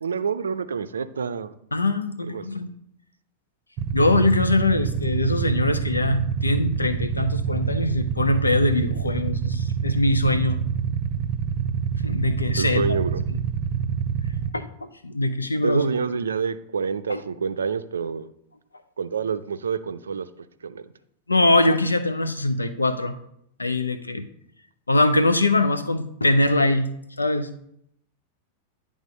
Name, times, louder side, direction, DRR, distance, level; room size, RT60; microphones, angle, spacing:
voice 1, 0.0-1.6 2.3-2.4 12.6-13.2 15.6-18.3 19.0-20.3 20.6-20.9, right 5 dB, 70° right, 11 dB, 0.5 m, -27 dB
voice 2, 1.7-2.7 3.9-10.6 12.0-13.0 13.3-13.4 14.5-14.7 15.0-15.9 17.1-17.2 21.3-23.2 23.6-24.3 24.9-26.9 27.2-27.5, left 2 dB, 80° left, 10 dB, 0.7 m, -22 dB
Motorcycle / Idling, 3.8-14.5, right 7 dB, 35° right, 0.7 m, -26 dB
10.5 x 3.5 x 5.2 m, 0.72 s
figure-of-eight pair, 90°, 0 cm